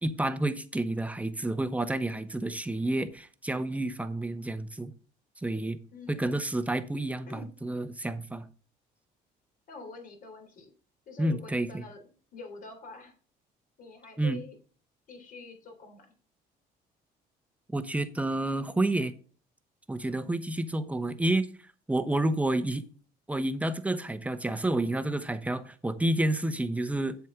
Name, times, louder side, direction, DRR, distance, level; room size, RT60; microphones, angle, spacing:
voice 1, 0.0-4.9 5.4-5.8 6.1-8.5 11.2-11.8 14.2-14.4 17.7-19.1 19.9-21.5 21.9-22.8 23.3-27.2, right 1 dB, 10° right, 1.0 m, -29 dB
voice 2, 9.7-10.7 11.1-13.1 13.8-14.5 15.1-16.1, left 3 dB, 55° left, 3.5 m, -46 dB
8.1 x 7.6 x 3.7 m
cardioid pair, 110°, 17 cm